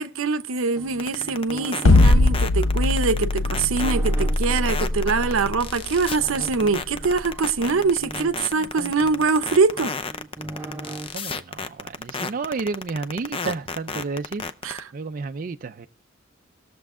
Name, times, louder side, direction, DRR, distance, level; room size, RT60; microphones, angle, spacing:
voice 1, 0.0-9.9 14.6-14.8, right 4 dB, 85° right, 0.7 m, -23 dB
sound 1, 0.8-5.5 6.2-11.1, right 2 dB, 10° right, 1.3 m, -39 dB
sound 2, 1.0-14.8, left 4 dB, 25° left, 0.6 m, -31 dB
sound 3, 1.9-8.0, left 2 dB, 80° left, 0.8 m, -20 dB
voice 2, 11.1-14.4 14.9-15.9, right 4 dB, 45° right, 0.4 m, -31 dB
18.5 x 6.9 x 3.6 m
head